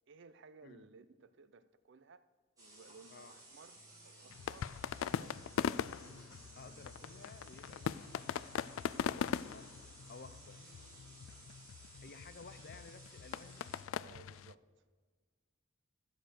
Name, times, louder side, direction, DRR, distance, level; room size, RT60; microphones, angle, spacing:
voice 1, 0.1-2.3 2.6-5.6 14.0-14.7, right 4 dB, 65° right, 14 dB, 0.5 m, -59 dB
sound 1, 2.6-13.8, right 2 dB, 20° right, 3.9 m, -58 dB
sound 2, 3.7-11.3, right 1 dB, 40° right, 0.9 m, -65 dB
sound 3, 4.3-14.5, left 8 dB, 85° left, 0.3 m, -41 dB
voice 2, 6.6-8.7 9.1-9.8 10.1-10.8 12.0-13.7, left 4 dB, 50° left, 12 dB, 0.7 m, -55 dB
13.0 x 6.6 x 6.3 m, 1.5 s
head